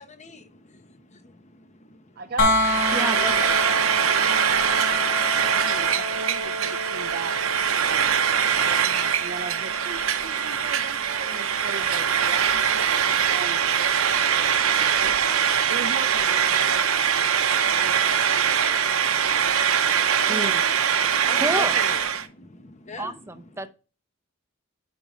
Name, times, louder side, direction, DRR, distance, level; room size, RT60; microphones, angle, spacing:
voice 1, 0.0-2.2 20.9-23.7, left 2 dB, 35° left, 0.9 m, -42 dB
voice 2, 2.2-4.2 4.5-4.9 5.5-7.4 7.7-8.1 8.4-15.2 15.7-18.9 19.2-19.6 20.3-20.5, right 4 dB, 45° right, 0.5 m, -39 dB
sound 1, 2.4-14.2 16.1-16.2, left 2 dB, 80° left, 2.9 m, -30 dB
Frying (food), 2.5-22.3, right 8 dB, 75° right, 0.9 m, -22 dB
voice 3, 2.9-3.3 20.3-20.6 21.3-21.7 23.0-23.7, right 2 dB, 10° right, 0.7 m, -29 dB
11.5 x 5.2 x 3.1 m
head